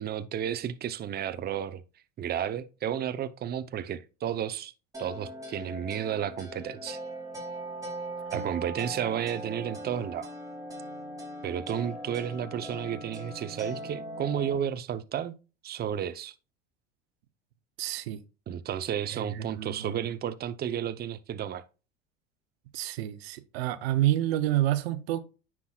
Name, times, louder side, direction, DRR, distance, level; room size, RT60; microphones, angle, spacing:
voice 1, 0.0-1.8 2.2-4.7 5.0-7.0 8.3-10.3 11.4-15.4 15.6-16.3 18.5-21.6, right 9 dB, 30° right, 0.7 m, -32 dB
sound 1, 4.9-14.6, right 1 dB, 10° right, 3.6 m, -40 dB
voice 2, 17.8-18.2 19.1-20.0 22.7-25.2, right 13 dB, 85° right, 0.8 m, -29 dB
9.6 x 6.0 x 2.4 m
supercardioid pair, 95°, 30 cm